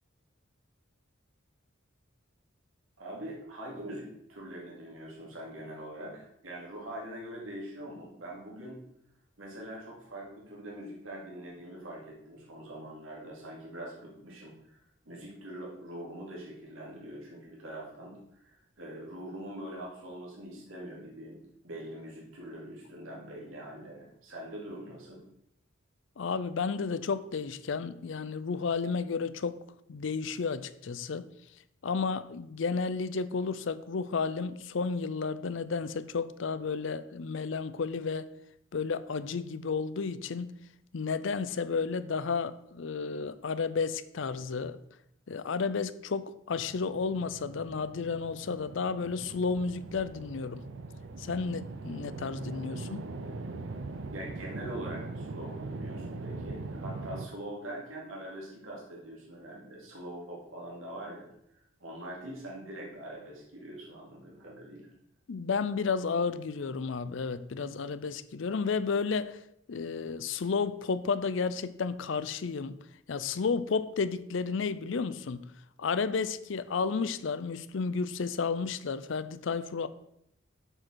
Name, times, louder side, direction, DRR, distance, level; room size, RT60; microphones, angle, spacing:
voice 1, 3.0-8.8 9.4-25.2 54.1-61.3 61.8-64.9, right 1 dB, 90° right, 2.5 m, -43 dB
voice 2, 26.2-29.6 29.9-31.3 31.8-38.3 38.7-40.5 40.9-44.8 45.3-50.6 51.2-53.1 65.3-69.4 69.7-72.8 73.1-75.5 75.8-79.9, left 5 dB, 65° left, 0.5 m, -32 dB
sound 1, 46.5-57.3, right 3 dB, 70° right, 0.6 m, -41 dB
7.6 x 4.9 x 6.2 m
head